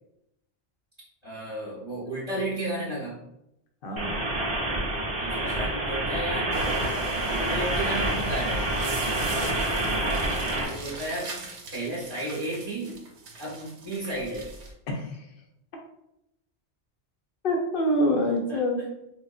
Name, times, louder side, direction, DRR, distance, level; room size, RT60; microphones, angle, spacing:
voice 1, 1.2-3.2 5.2-6.5 7.3-8.7 10.5-11.4 11.7-13.0 13.4-14.5 18.5-18.6, right 1 dB, 30° left, -8 dB, 0.8 m, -33 dB
voice 2, 3.8-4.2 9.1-9.5 14.9-15.2 17.4-18.8, left 1 dB, 60° left, 1 dB, 0.8 m, -26 dB
sound 1, 4.0-10.6, right 1 dB, 35° right, 0.5 m, -27 dB
sound 2, 6.5-14.7, right 2 dB, 75° right, 0.9 m, -38 dB
3.9 x 2.1 x 2.3 m, 0.82 s
omnidirectional pair, 1.1 m